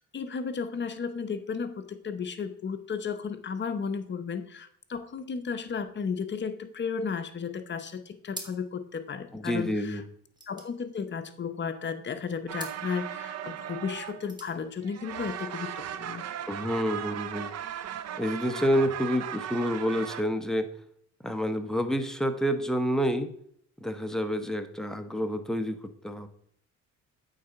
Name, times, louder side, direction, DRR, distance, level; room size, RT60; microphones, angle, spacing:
voice 1, 0.1-10.0 10.5-16.3, left 6 dB, 40° left, 9 dB, 0.8 m, -34 dB
sound 1, 8.3-8.9 9.2-9.3 9.5-11.7 12.5-12.9 14.0-14.6, right 1 dB, 15° right, 1.6 m, -45 dB
voice 2, 9.3-10.0 16.5-17.5 18.2-20.7 21.2-23.3 23.8-26.3, equal, ahead, 7 dB, 0.8 m, -28 dB
sound 2, 12.5-14.6 14.8-20.2, right 10 dB, 60° right, 0.6 m, -37 dB
8.5 x 4.0 x 5.6 m, 0.67 s
cardioid pair, 90°, 30 cm